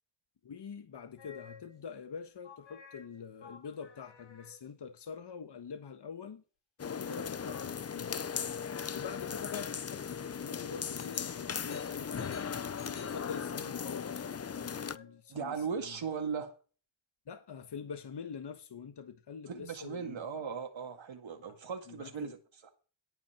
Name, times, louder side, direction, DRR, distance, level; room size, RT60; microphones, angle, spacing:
voice 1, 0.4-6.4 6.8-8.3 8.9-16.0 17.3-20.2 21.9-22.3, left 6 dB, 60° left, 1.4 m, -45 dB
sound 1, 1.2-1.9 2.4-4.9 11.0-15.4, left 5 dB, 90° left, 4.1 m, -55 dB
sound 2, 6.8-15.0, left 7 dB, 35° left, 0.6 m, -38 dB
voice 2, 15.3-16.5 19.5-22.4, right 6 dB, 80° right, 2.1 m, -38 dB
17.5 x 5.8 x 5.9 m
cardioid pair, 65°, 46 cm